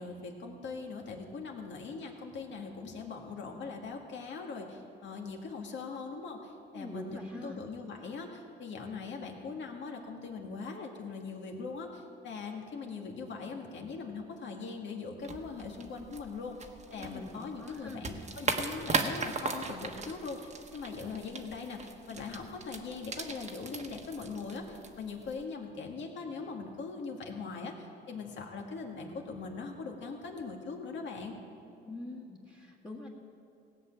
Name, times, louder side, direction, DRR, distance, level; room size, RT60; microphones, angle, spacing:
voice 1, 0.0-27.7 28.1-31.3, left 4 dB, 65° left, 1 dB, 2.0 m, -41 dB
voice 2, 6.7-7.6 17.0-18.0 31.8-33.1, left 2 dB, 25° left, -5 dB, 1.9 m, -44 dB
sound 1, 15.2-25.4, right 4 dB, 35° right, 1.2 m, -38 dB
17.5 x 6.0 x 8.7 m, 2.7 s
cardioid pair, 90°, 20 cm